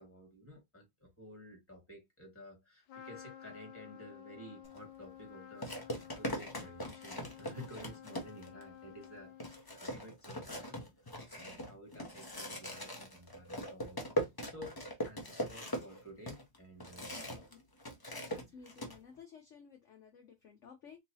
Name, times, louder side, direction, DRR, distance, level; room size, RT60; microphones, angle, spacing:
voice 1, 0.0-17.7, equal, 5° left, 1.6 m, -53 dB
Trumpet, 2.9-9.8, left 10 dB, 85° left, 1.3 m, -53 dB
sound 1, 4.6-4.8 5.6-8.6 9.0-9.1 9.4-17.5 17.8-19.0, equal, 30° left, 0.4 m, -40 dB
voice 2, 18.3-21.0, left 6 dB, 55° left, 0.9 m, -55 dB
3.8 x 2.9 x 2.7 m
omnidirectional pair, 2.0 m